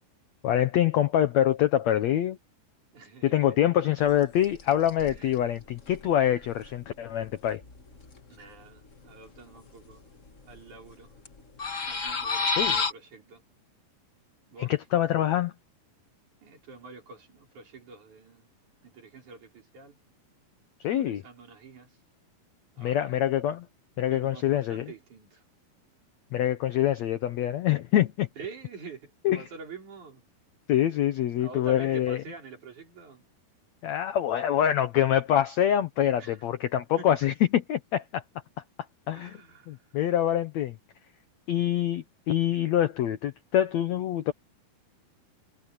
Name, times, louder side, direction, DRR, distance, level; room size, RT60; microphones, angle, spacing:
voice 1, 0.4-2.4 3.2-7.6 12.6-12.7 14.6-15.5 20.8-21.2 22.8-23.7 24.0-24.9 26.3-28.3 29.2-29.4 30.7-32.2 33.8-38.2 39.1-39.4 39.7-40.8 41.5-44.3, left 11 dB, 85° left, 1.5 m, -25 dB
voice 2, 2.9-3.6 5.0-5.5 6.2-6.4 8.3-10.0 10.4-11.2 11.8-13.4 14.5-14.7 16.4-18.5 18.8-20.0 20.9-22.0 22.8-23.2 24.1-25.4 28.4-30.2 31.4-33.2 36.2-36.4 37.0-37.1 39.2-40.0, right 4 dB, 50° right, 5.9 m, -47 dB
sound 1, 4.0-4.1 4.4-8.2 8.6-8.7 8.9-9.9 10.2-10.9 11.2-12.9, left 4 dB, 50° left, 0.9 m, -30 dB
omnidirectional pair, 4.4 m